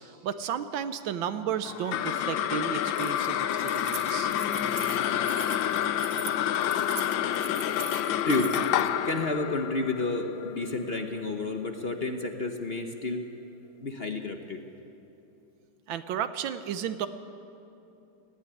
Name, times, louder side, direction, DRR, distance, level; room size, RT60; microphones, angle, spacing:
voice 1, 0.0-4.3 15.9-17.1, right 9 dB, 85° right, 11 dB, 1.6 m, -33 dB
sound 1, 1.7-12.3, left 10 dB, 85° left, 1.4 m, -29 dB
Keys jangling, 2.8-8.9, right 6 dB, 45° right, 0.8 m, -42 dB
voice 2, 9.0-13.3 13.8-14.6, left 2 dB, 40° left, 4 dB, 1.0 m, -30 dB
18.5 x 15.0 x 9.8 m, 2.8 s
omnidirectional pair, 2.1 m